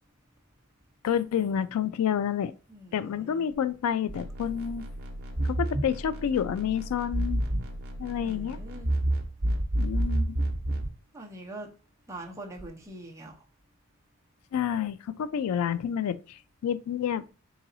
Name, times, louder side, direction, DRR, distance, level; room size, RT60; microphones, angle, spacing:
voice 1, 1.0-2.5 2.9-4.9 5.4-7.4 8.0-8.6 9.8-10.4 14.5-17.2, left 8 dB, 80° left, 0.3 m, -29 dB
voice 2, 2.7-3.4 8.2-8.9 11.1-11.7 12.1-13.3, right 1 dB, 15° right, 0.8 m, -43 dB
sound 1, 4.1-10.9, right 1 dB, 45° right, 0.9 m, -30 dB
4.0 x 3.9 x 2.7 m
head